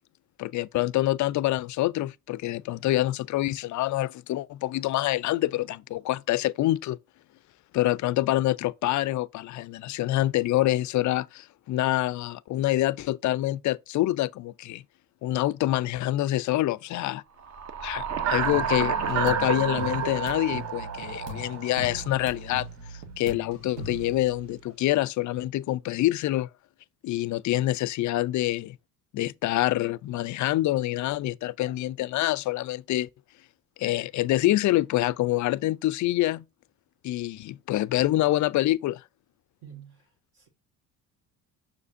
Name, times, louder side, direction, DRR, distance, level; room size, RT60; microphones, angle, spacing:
voice 1, 0.4-7.0 7.7-14.8 15.2-17.2 17.8-26.5 27.0-28.8 29.1-33.1 33.8-36.4 37.0-39.0, left 15 dB, 40° left, 0.5 m, -26 dB
sound 1, 17.5-22.1, right 7 dB, 35° right, 0.9 m, -29 dB
sound 2, 18.4-24.8, right 1 dB, 80° right, 1.3 m, -40 dB
voice 2, 39.6-40.1 40.3-40.5, right 9 dB, 50° right, 1.8 m, -47 dB
7.1 x 6.4 x 2.6 m
hypercardioid pair, 55°, 45 cm